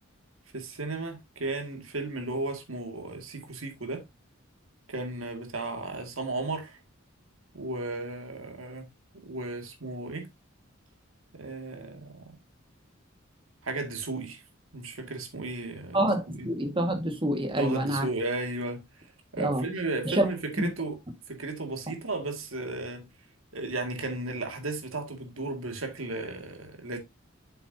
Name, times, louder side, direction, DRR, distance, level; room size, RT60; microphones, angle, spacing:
voice 1, 0.5-4.0 4.9-6.8 7.5-8.9 9.2-10.3 11.3-12.3 13.6-14.4 14.7-16.5 17.6-21.0 21.3-23.1 23.5-27.0, right 2 dB, 80° right, 2.1 m, -35 dB
voice 2, 15.9-18.1 19.4-19.6 20.0-20.3 20.6-20.7, right 1 dB, 25° right, 1.7 m, -27 dB
7.9 x 6.9 x 2.7 m
head